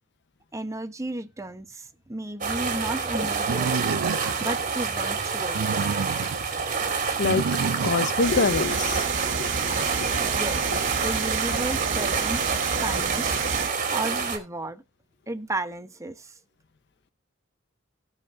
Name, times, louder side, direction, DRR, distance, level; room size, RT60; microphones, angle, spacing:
voice 1, 0.5-4.0 4.4-5.7 10.2-10.6 11.0-12.4 12.8-13.4 13.9-14.8 15.3-16.3, right 2 dB, 15° right, 0.9 m, -33 dB
sound 1, 2.4-14.4, right 5 dB, 40° right, 2.5 m, -27 dB
Animal, 3.5-4.6 5.4-6.5 7.2-8.3, right 5 dB, 85° right, 0.5 m, -29 dB
voice 2, 7.8-9.7 10.0-10.1, left 4 dB, 60° left, 0.6 m, -25 dB
sound 2, 8.2-13.7, right 6 dB, 65° right, 1.0 m, -30 dB
17.5 x 6.7 x 2.6 m
head